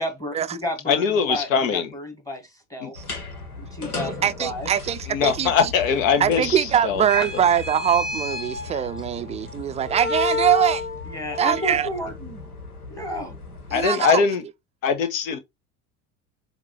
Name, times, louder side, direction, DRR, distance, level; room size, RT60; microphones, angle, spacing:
voice 1, 0.0-2.9 3.6-4.7 7.2-7.3 11.1-12.4 12.9-13.4, equal, 10° left, 1.8 m, -32 dB
voice 2, 0.9-1.9 2.8-2.9 5.1-7.0 13.7-14.4 14.8-15.4, left 6 dB, 65° left, 1.3 m, -21 dB
sound 1, 3.0-13.9, left 3 dB, 80° left, 1.7 m, -32 dB
voice 3, 4.2-5.5 6.2-10.8 11.4-11.9 13.7-14.2, right 9 dB, 15° right, 0.4 m, -22 dB
7.3 x 2.8 x 4.7 m
figure-of-eight pair, 65°, 43 cm